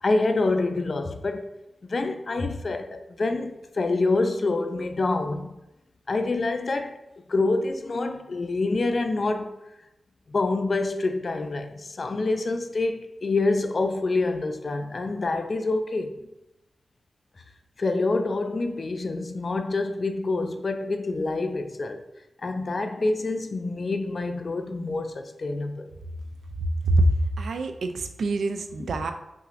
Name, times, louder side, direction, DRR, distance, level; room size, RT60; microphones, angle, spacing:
voice 1, 0.0-1.5 1.9-5.5 6.1-7.0 7.3-9.6 10.3-16.2 17.8-22.0 22.4-25.9 28.8-28.9, left 3 dB, 60° left, 0.4 m, -26 dB
voice 2, 26.8-29.1, right 1 dB, 90° right, 0.3 m, -24 dB
5.5 x 2.5 x 2.5 m
cardioid pair, 40°, 0 cm